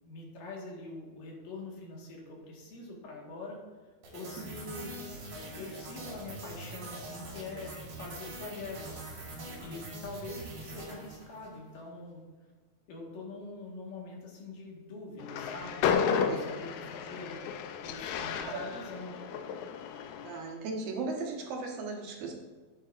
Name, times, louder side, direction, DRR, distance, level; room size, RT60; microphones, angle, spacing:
voice 1, 0.0-3.6 4.1-4.9 5.5-9.1 9.6-12.2 12.9-17.4 17.8-19.1, left 2 dB, 65° left, -2 dB, 3.2 m, -44 dB
sound 1, 4.0-11.6, right 2 dB, 50° right, 3.4 m, -43 dB
Train, 15.2-20.5, left 7 dB, 90° left, 1.6 m, -33 dB
voice 2, 20.2-22.3, right 4 dB, 75° right, -1 dB, 3.2 m, -36 dB
12.0 x 9.2 x 2.6 m, 1.4 s
omnidirectional pair, 4.2 m